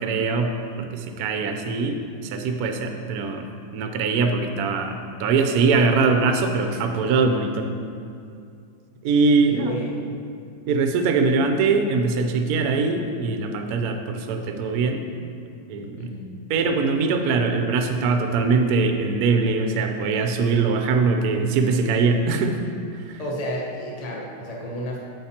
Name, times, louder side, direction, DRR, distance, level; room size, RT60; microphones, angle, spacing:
voice 1, 0.0-3.5 3.7-7.7 9.0-9.8 10.7-15.3 15.7-16.1 16.5-22.6 23.0-23.2, right 4 dB, 75° right, 5 dB, 0.8 m, -22 dB
voice 2, 9.4-10.2 16.0-16.3 23.2-25.0, equal, 35° left, -2 dB, 0.6 m, -32 dB
9.2 x 7.8 x 2.9 m, 2.4 s
omnidirectional pair, 2.3 m